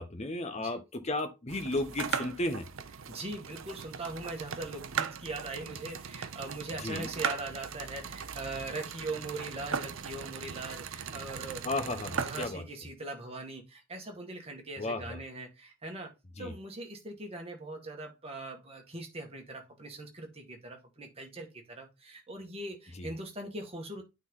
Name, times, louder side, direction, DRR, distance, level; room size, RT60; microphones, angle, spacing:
voice 1, 0.0-2.7 6.8-7.1 11.6-12.6 14.8-15.2 16.4-16.5 23.0-23.1, left 2 dB, 30° left, 1.0 m, -34 dB
sound 1, 1.5-12.5, right 6 dB, 65° right, 0.7 m, -38 dB
voice 2, 3.1-16.1 16.4-24.0, right 2 dB, 25° right, 1.8 m, -41 dB
9.0 x 4.0 x 3.8 m
head